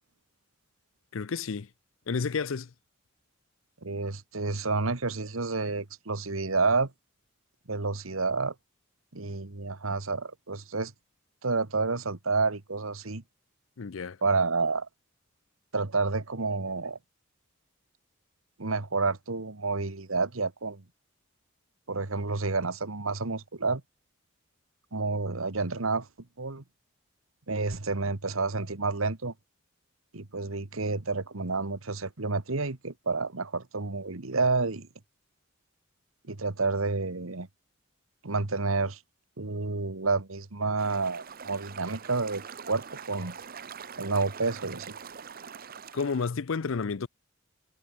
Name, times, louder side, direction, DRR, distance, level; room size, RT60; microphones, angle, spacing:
voice 1, 1.1-1.7 2.1-2.7 13.8-14.2 45.9-47.1, left 5 dB, 70° left, 0.6 m, -30 dB
voice 2, 3.8-6.9 7.7-8.5 9.1-10.9 11.4-13.2 14.2-14.9 15.7-17.0 18.6-20.8 21.9-23.8 24.9-26.1 26.4-26.6 27.5-29.3 30.1-34.9 36.3-37.5 38.2-39.0 39.4-42.4 42.7-43.3 44.0-44.9, right 3 dB, 85° right, 1.6 m, -29 dB
sound 1, 40.8-46.3, right 6 dB, 45° right, 0.9 m, -44 dB
head